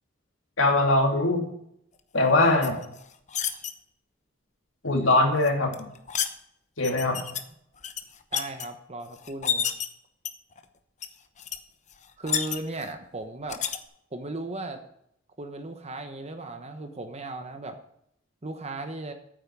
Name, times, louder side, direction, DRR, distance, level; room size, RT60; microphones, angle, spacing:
voice 1, 0.6-1.5 2.1-2.8 4.8-5.8 6.8-7.2, left 2 dB, 75° left, 2 dB, 2.7 m, -22 dB
sound 1, 2.6-3.7 5.4-6.3 6.8-7.4 7.8-8.7 9.2-9.9 10.3-10.6 11.0-11.1 11.4-11.6 11.9-12.9 13.5-13.8, left 9 dB, 40° left, 0.9 m, -30 dB
voice 2, 8.3-9.7 12.2-13.6 14.1-14.8 15.4-17.8 18.4-19.1, right 2 dB, 35° right, 6 dB, 1.0 m, -36 dB
8.9 x 8.8 x 6.1 m, 0.71 s
head